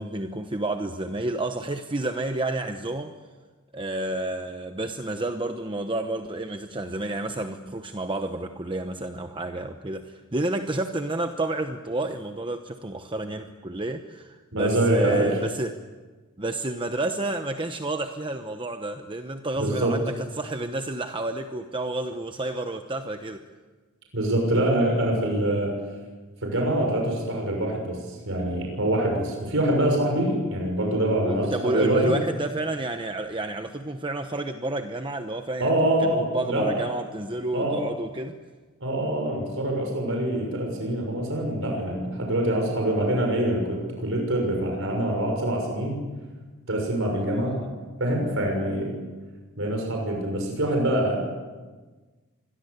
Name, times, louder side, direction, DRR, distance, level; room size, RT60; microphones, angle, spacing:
voice 1, 0.0-3.1 3.7-15.8 16.4-23.4 31.2-35.7 36.0-38.4 47.1-47.7, right 2 dB, 25° right, 6 dB, 1.0 m, -30 dB
voice 2, 14.5-15.4 19.6-20.0 24.1-25.7 26.4-32.1 35.6-36.8 37.5-37.8 38.8-46.0 46.7-47.6 48.0-48.9 49.6-51.2, right 1 dB, 60° right, 1 dB, 6.4 m, -25 dB
26.5 x 21.5 x 8.2 m, 1.3 s
head